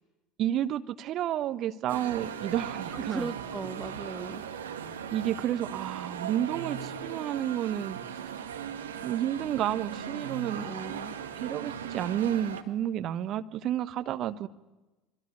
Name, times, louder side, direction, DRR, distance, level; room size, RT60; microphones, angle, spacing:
voice 1, 0.4-3.3 5.1-8.0 9.0-10.7 11.4-14.5, right 11 dB, 45° right, 11 dB, 1.2 m, -31 dB
sound 1, 1.9-12.6, right 8 dB, 75° right, 2.0 m, -38 dB
voice 2, 2.9-4.4 10.6-11.2, right 3 dB, 15° right, 14 dB, 0.9 m, -38 dB
26.5 x 23.5 x 9.7 m, 1.1 s
figure-of-eight pair, 70°, 0 cm